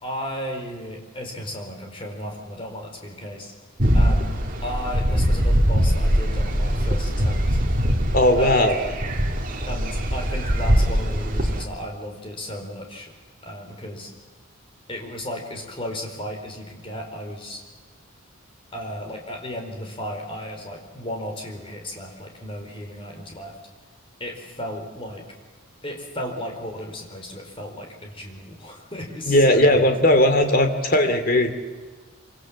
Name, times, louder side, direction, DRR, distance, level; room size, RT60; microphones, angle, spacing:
voice 1, 0.0-3.6 3.9-4.4 4.6-7.6 8.4-9.1 9.7-13.1 13.4-14.1 14.9-17.6 18.7-23.6 24.2-25.2 25.8-29.8, equal, 25° left, 2 dB, 4.5 m, -34 dB
sound 1, 3.8-11.6, equal, 40° right, 2.4 m, -22 dB
voice 2, 8.1-8.7 29.3-31.5, left 1 dB, 40° left, 7 dB, 2.7 m, -17 dB
26.5 x 26.0 x 7.5 m, 1.4 s
head